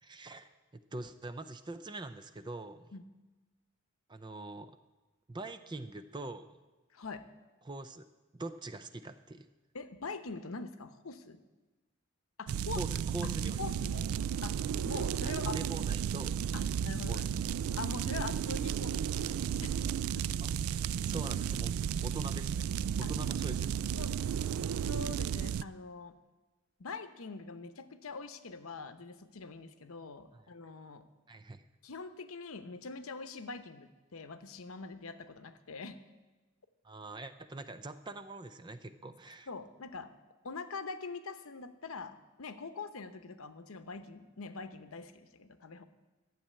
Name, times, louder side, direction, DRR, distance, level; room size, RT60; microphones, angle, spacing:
voice 1, 0.0-2.9 4.1-4.8 5.3-6.6 7.6-8.1 8.3-9.5 12.7-13.6 15.2-16.4 17.1-17.3 20.4-20.5 21.0-21.8 22.0-22.7 23.0-23.9 30.3-30.4 31.3-31.6 36.8-39.5, right 2 dB, 20° right, 11 dB, 0.5 m, -43 dB
voice 2, 6.9-7.3 9.7-11.4 12.4-12.8 13.2-14.1 14.4-15.6 16.5-17.3 17.8-20.3 22.0-22.1 23.0-23.1 23.9-24.2 24.8-26.2 26.8-31.1 31.8-36.0 39.5-40.1 40.4-45.8, left 4 dB, 80° left, 10 dB, 0.8 m, -44 dB
sound 1, 12.5-25.6, right 8 dB, 80° right, 0.3 m, -33 dB
12.0 x 7.4 x 8.6 m, 1.2 s
head